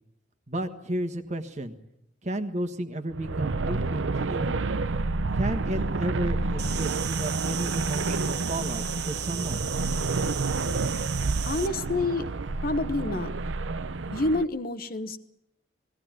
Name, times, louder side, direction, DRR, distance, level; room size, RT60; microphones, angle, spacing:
voice 1, 0.5-1.7 2.2-4.6 5.3-9.7, right 1 dB, 35° right, 8 dB, 1.5 m, -33 dB
sound 1, 3.1-14.4, right 3 dB, 85° right, 0.7 m, -29 dB
Insect, 6.6-11.7, right 10 dB, 60° right, 1.6 m, -35 dB
voice 2, 11.5-12.3 12.6-13.3 14.1-15.2, left 2 dB, 50° left, 10 dB, 1.1 m, -28 dB
20.0 x 16.5 x 9.2 m, 0.80 s
head